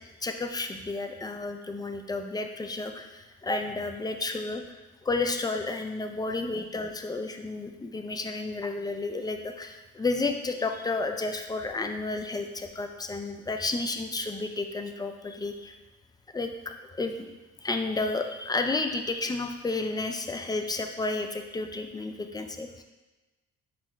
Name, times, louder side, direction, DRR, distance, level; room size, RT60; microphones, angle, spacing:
voice 1, 0.2-4.6 5.0-15.8 16.3-17.3 17.6-22.8, left 3 dB, 15° left, 5 dB, 0.3 m, -31 dB
4.3 x 3.9 x 3.0 m, 1.1 s
cardioid pair, 90°, 30 cm